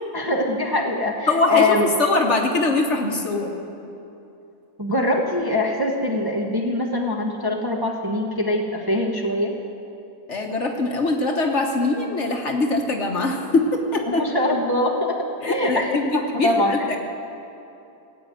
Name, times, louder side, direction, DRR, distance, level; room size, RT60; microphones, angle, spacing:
voice 1, 0.1-1.9 4.8-9.6 14.1-17.0, left 2 dB, 15° right, -1 dB, 1.0 m, -23 dB
voice 2, 1.3-3.5 10.3-14.2 15.4-16.1 16.4-17.0, left 2 dB, 50° left, 2 dB, 1.5 m, -22 dB
17.0 x 8.4 x 9.1 m, 2.8 s
omnidirectional pair, 1.7 m